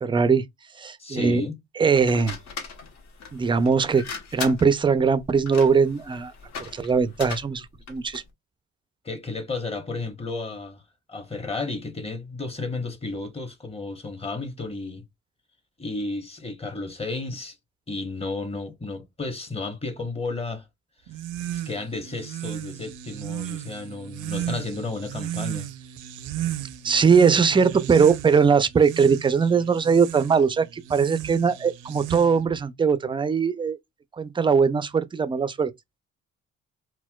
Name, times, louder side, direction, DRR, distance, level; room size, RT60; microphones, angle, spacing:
voice 1, 0.0-0.4 0.8-1.4 1.8-2.4 3.3-4.0 4.3-6.3 6.7-8.2 26.8-33.8 34.2-35.7, right 5 dB, 15° right, 0.3 m, -20 dB
voice 2, 1.0-1.6 9.0-10.8 11.1-15.0 15.8-17.6 17.9-20.7 21.5-25.7, left 3 dB, 20° left, 0.9 m, -32 dB
sound 1, 1.9-8.3, left 5 dB, 65° left, 1.1 m, -39 dB
sound 2, 21.1-32.6, right 12 dB, 85° right, 0.5 m, -35 dB
4.1 x 2.2 x 2.2 m
cardioid pair, 90°, 30 cm